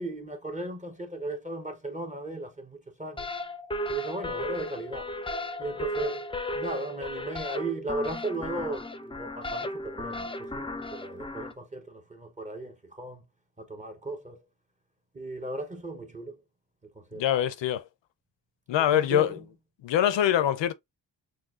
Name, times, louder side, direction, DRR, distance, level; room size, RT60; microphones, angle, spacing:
voice 1, 0.0-3.3 3.9-5.1 5.6-6.3 6.5-13.2 13.6-14.4 15.1-16.4 16.9-17.2 18.8-19.3, right 2 dB, 15° right, 0.8 m, -36 dB
sound 1, 3.2-11.5, left 1 dB, 15° left, 0.5 m, -35 dB
voice 2, 17.1-17.8 18.7-19.4 19.8-20.7, left 11 dB, 85° left, 0.7 m, -24 dB
6.2 x 2.3 x 2.4 m
wide cardioid pair, 120°, 42 cm